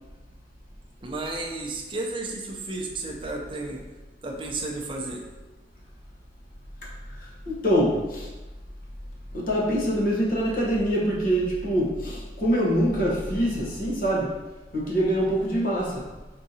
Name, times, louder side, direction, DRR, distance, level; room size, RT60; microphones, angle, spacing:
voice 1, 1.0-3.8 4.2-5.2, right 2 dB, 30° right, 0 dB, 0.6 m, -32 dB
voice 2, 7.2-8.3 9.3-14.3 14.7-16.0, equal, 50° left, -4 dB, 0.9 m, -24 dB
4.6 x 3.8 x 2.7 m, 1.2 s
head